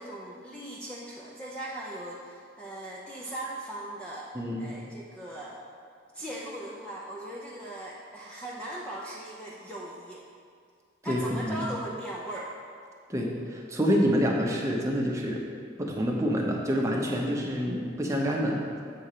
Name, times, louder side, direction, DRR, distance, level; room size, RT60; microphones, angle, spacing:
voice 1, 0.0-5.6 6.1-10.2 11.0-12.6, right 1 dB, 5° left, -5 dB, 0.6 m, -39 dB
voice 2, 4.3-4.7 11.0-11.6 13.1-15.4 15.8-18.6, equal, 15° right, -2 dB, 0.9 m, -27 dB
7.6 x 4.3 x 6.7 m, 2.2 s
head